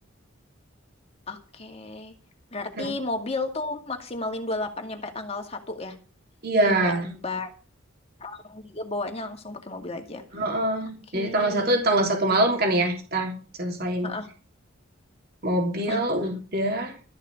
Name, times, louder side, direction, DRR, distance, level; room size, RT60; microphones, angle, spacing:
voice 1, 1.3-2.1 2.5-6.0 6.6-7.5 8.2-10.2 10.8-11.8 14.0-14.3 15.9-16.0, left 2 dB, 30° left, 4 dB, 2.2 m, -33 dB
voice 2, 6.4-7.1 10.3-13.3 13.6-14.1 15.4-16.9, right 1 dB, 50° right, 2 dB, 3.3 m, -24 dB
13.5 x 6.6 x 8.1 m, 0.37 s
head